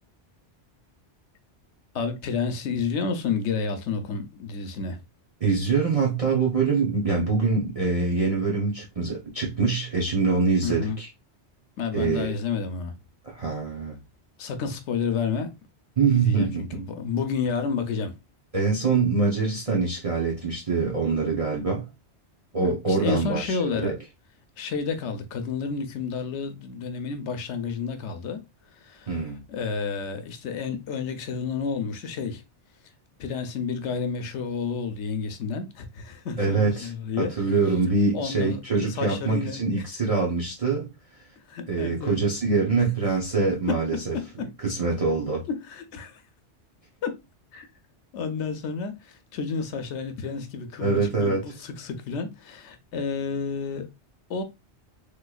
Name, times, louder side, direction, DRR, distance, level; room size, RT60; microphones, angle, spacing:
voice 1, 1.9-5.0 10.6-11.0 11.8-12.9 14.4-15.5 16.1-18.1 22.6-24.0 24.6-28.4 28.8-29.2 29.5-32.4 33.2-37.3 38.1-39.6 41.5-42.2 43.7-44.5 45.5-46.2 47.0-47.1 47.5-47.7 48.1-53.9 54.3-54.4, left 5 dB, 90° left, 1.0 m, -30 dB
voice 2, 5.4-11.1 11.9-12.3 13.2-13.9 16.0-16.8 18.5-21.9 22.5-23.9 29.1-29.4 36.4-36.9 37.2-40.9 41.7-44.1 44.6-45.5 50.8-51.4, right 4 dB, 35° right, 0.8 m, -24 dB
3.4 x 3.0 x 2.3 m
omnidirectional pair, 1.2 m